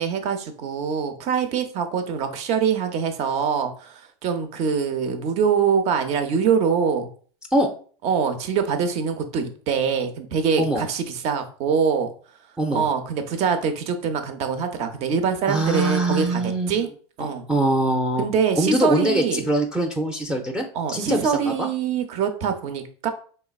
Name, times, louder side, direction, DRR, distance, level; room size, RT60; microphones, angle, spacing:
voice 1, 0.0-7.1 8.0-12.1 12.7-16.4 16.7-16.9 17.2-17.4 18.2-19.5 20.7-23.1, right 6 dB, 50° right, 8 dB, 0.8 m, -24 dB
voice 2, 12.6-12.9 15.5-16.8 17.2-18.3 18.6-21.7, right 1 dB, 5° right, 3 dB, 0.5 m, -23 dB
4.7 x 3.2 x 2.4 m, 0.43 s
supercardioid pair, 115°, 15 cm